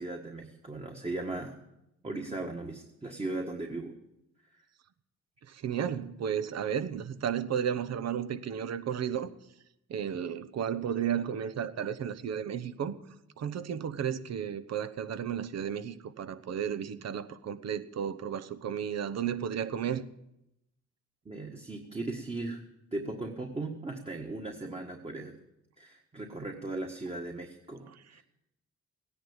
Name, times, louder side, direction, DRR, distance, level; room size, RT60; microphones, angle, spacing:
voice 1, 0.0-1.6 2.0-3.9 4.5-4.6 21.2-22.6 22.9-25.3 25.8-28.2, right 2 dB, 20° right, 2 dB, 1.7 m, -37 dB
voice 2, 5.5-9.3 9.9-13.0 13.4-20.0 27.9-28.0, right 8 dB, 60° right, 13 dB, 1.0 m, -33 dB
17.0 x 10.5 x 7.3 m, 0.86 s
cardioid pair, 90°, 30 cm